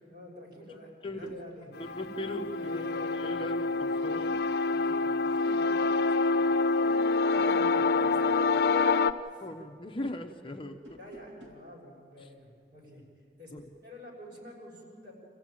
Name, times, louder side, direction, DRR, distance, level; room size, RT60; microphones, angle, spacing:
voice 1, 0.1-1.7 2.6-3.4 4.6-6.5 6.8-8.7 9.2-9.4 11.0-13.5 13.8-15.1, left 1 dB, 50° right, -3 dB, 6.3 m, -49 dB
voice 2, 1.0-1.3 1.8-4.4 9.4-10.8 12.2-12.3 13.5-13.6, left 1 dB, 30° left, 4 dB, 0.9 m, -39 dB
sound 1, 1.3-1.5 3.0-3.4 3.7-4.6 7.1-7.8 10.7-11.7, left 1 dB, 75° right, 3.7 m, -54 dB
sound 2, 1.8-9.1, left 3 dB, 55° left, 0.7 m, -27 dB
27.0 x 15.5 x 9.0 m, 2.3 s
head